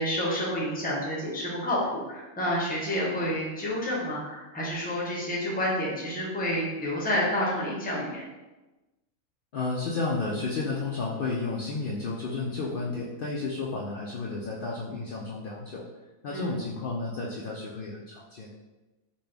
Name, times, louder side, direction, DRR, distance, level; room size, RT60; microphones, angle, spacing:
voice 1, 0.0-8.2 16.3-16.5, equal, 10° left, -4 dB, 0.6 m, -29 dB
voice 2, 9.5-15.9 16.2-18.5, left 3 dB, 75° left, -3 dB, 0.5 m, -32 dB
4.1 x 2.2 x 3.3 m, 1.1 s
omnidirectional pair, 1.4 m